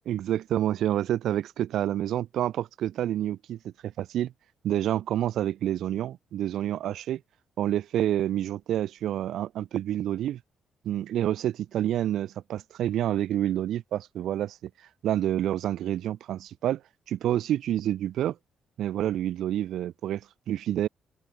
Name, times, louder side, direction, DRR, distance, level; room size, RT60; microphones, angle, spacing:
voice 1, 0.0-4.3 4.6-7.2 7.6-10.4 10.8-14.7 15.0-16.8 17.1-18.4 18.8-20.9, right 12 dB, 75° right, 1.6 m, -28 dB
open air
cardioid pair, 90°, 0 cm